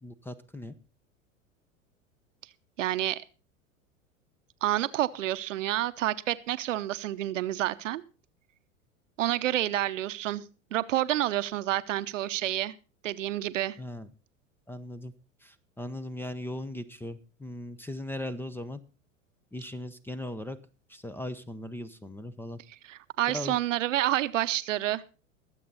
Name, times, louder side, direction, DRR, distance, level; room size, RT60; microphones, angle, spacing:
voice 1, 0.0-0.7 13.8-14.1 14.7-15.1 15.4-18.8 19.5-20.6 20.9-22.6 23.3-23.6, left 1 dB, 5° left, 0.8 m, -38 dB
voice 2, 2.8-3.2 4.6-8.0 9.2-10.4 10.7-12.7 13.0-13.8 22.9-25.0, right 13 dB, 65° right, 0.9 m, -29 dB
22.0 x 7.7 x 4.0 m
figure-of-eight pair, 90°, 41 cm